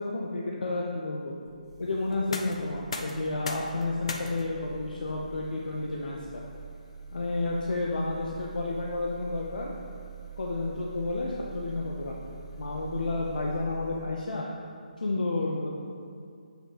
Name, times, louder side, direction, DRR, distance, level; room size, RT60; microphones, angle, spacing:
voice 1, 0.0-1.3 1.8-6.4 7.1-9.7 10.4-12.2 12.6-14.5 15.0-15.8, left 2 dB, 80° left, -2 dB, 0.7 m, -31 dB
sound 1, 1.4-14.1, right 7 dB, 35° right, 1.4 m, -45 dB
sound 2, 2.1-13.9, left 3 dB, 45° left, 0.5 m, -45 dB
7.2 x 5.8 x 2.9 m, 2.2 s
hypercardioid pair, 170°, 4 cm